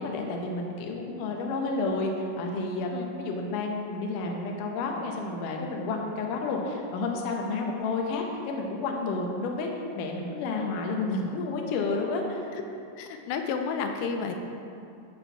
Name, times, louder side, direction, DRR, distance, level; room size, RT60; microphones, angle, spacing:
voice 1, 0.0-9.7 9.9-12.5, left 3 dB, 75° left, 1 dB, 2.1 m, -30 dB
voice 2, 13.0-14.3, left 5 dB, 90° left, 5 dB, 2.8 m, -31 dB
13.0 x 4.5 x 4.5 m, 2.6 s
omnidirectional pair, 4.7 m